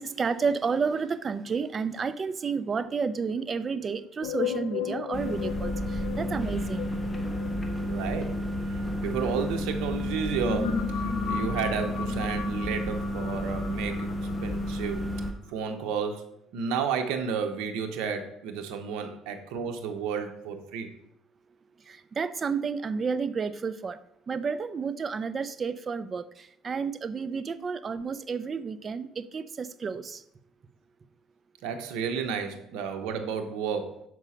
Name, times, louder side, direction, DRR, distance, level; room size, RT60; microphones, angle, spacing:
voice 1, 0.0-5.7 6.2-6.9 22.2-24.0 24.3-26.2 26.6-30.2, right 5 dB, 35° right, 13 dB, 0.5 m, -31 dB
sound 1, 4.2-9.5 10.1-15.1, left 7 dB, 90° left, 0.6 m, -36 dB
sound 2, 5.1-15.3, equal, 15° left, 1.2 m, -31 dB
voice 2, 7.8-8.4 8.7-14.1 14.4-15.0 15.5-20.9 27.6-27.7 31.6-34.0, right 6 dB, 85° right, 5 dB, 0.8 m, -32 dB
6.1 x 5.0 x 5.6 m, 0.77 s
cardioid pair, 100°, 0 cm